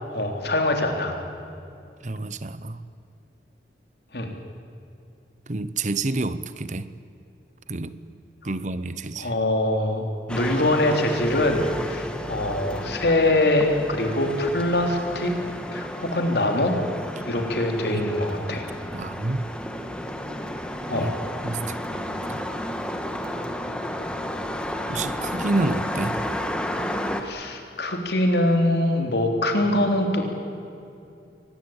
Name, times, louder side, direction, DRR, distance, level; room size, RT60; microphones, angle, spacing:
voice 1, 0.1-1.1 4.1-4.3 9.2-15.3 15.7-16.8 17.2-18.7 20.9-21.1 27.1-30.3, left 1 dB, 65° left, 3 dB, 3.4 m, -23 dB
voice 2, 2.0-2.8 5.5-6.9 7.7-8.1 8.4-9.3 17.9-18.1 18.5-18.6 18.9-19.5 21.0-21.1 21.4-22.5 24.9-26.3, right 2 dB, 45° right, 14 dB, 0.8 m, -29 dB
sound 1, 10.3-27.2, equal, 5° left, 1.5 m, -32 dB
24.5 x 19.5 x 8.9 m, 2.6 s
head